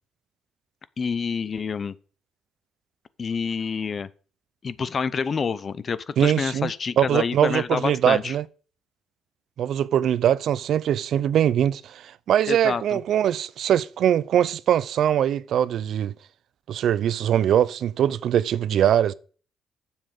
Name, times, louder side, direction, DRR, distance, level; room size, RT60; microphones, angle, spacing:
voice 1, 1.0-1.9 3.2-4.1 4.6-8.3 12.5-13.0, left 5 dB, 45° left, 0.7 m, -27 dB
voice 2, 6.2-6.7 7.0-8.4 9.6-16.1 16.7-19.1, right 10 dB, 70° right, 0.5 m, -22 dB
7.4 x 7.3 x 6.7 m
cardioid pair, 90°, 0 cm